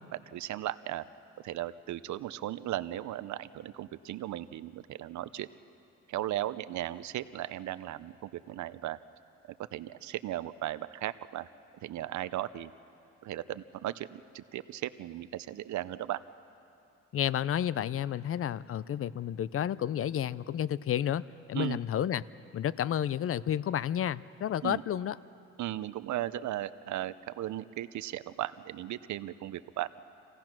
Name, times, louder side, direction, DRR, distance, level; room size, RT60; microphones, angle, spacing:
voice 1, 0.3-1.0 1.4-5.5 6.1-9.0 9.7-11.5 11.8-12.7 13.2-16.2 21.5-21.8 24.6-24.8 25.6-30.0, right 13 dB, 70° right, 15 dB, 0.7 m, -36 dB
voice 2, 17.1-21.2 21.5-22.2 22.5-25.2, left 10 dB, 45° left, 19 dB, 0.5 m, -31 dB
28.0 x 16.5 x 6.0 m, 2.7 s
cardioid pair, 90°, 30 cm